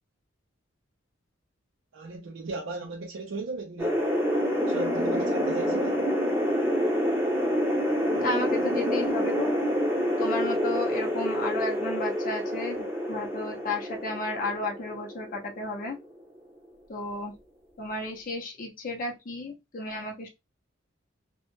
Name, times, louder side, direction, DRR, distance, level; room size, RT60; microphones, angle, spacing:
voice 1, 1.9-4.1 4.7-6.0, right 3 dB, 70° right, 0.4 m, -37 dB
sound 1, 3.8-16.2, equal, 10° right, 0.5 m, -27 dB
voice 2, 8.1-9.5 10.2-16.0 16.9-17.3 17.8-20.3, left 2 dB, 45° left, 0.5 m, -33 dB
2.1 x 2.1 x 2.9 m
head